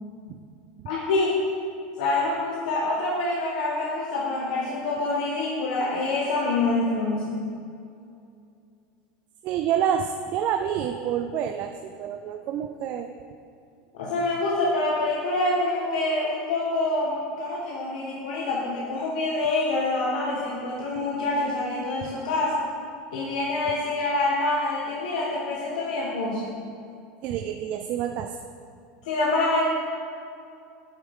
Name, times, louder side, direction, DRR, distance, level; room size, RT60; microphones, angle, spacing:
voice 1, 0.8-1.4 2.0-7.4 14.0-22.6 23.1-26.5 29.0-29.7, left 2 dB, 85° left, -4 dB, 1.4 m, -26 dB
voice 2, 9.4-13.1 27.2-28.4, right 9 dB, 40° right, 6 dB, 0.4 m, -28 dB
9.5 x 8.5 x 3.7 m, 2.5 s
supercardioid pair, 160°, 4 cm